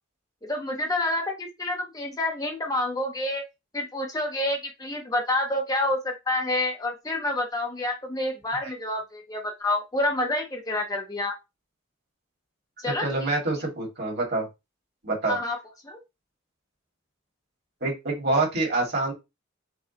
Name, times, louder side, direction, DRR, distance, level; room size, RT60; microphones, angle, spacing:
voice 1, 0.4-3.4 3.7-11.3 12.8-13.3 15.3-15.6 15.8-16.0, left 1 dB, 20° left, 2 dB, 0.7 m, -28 dB
voice 2, 13.0-14.5 15.0-15.4 17.8-19.1, right 2 dB, 50° right, -1 dB, 1.9 m, -26 dB
4.9 x 2.4 x 3.9 m, 0.24 s
head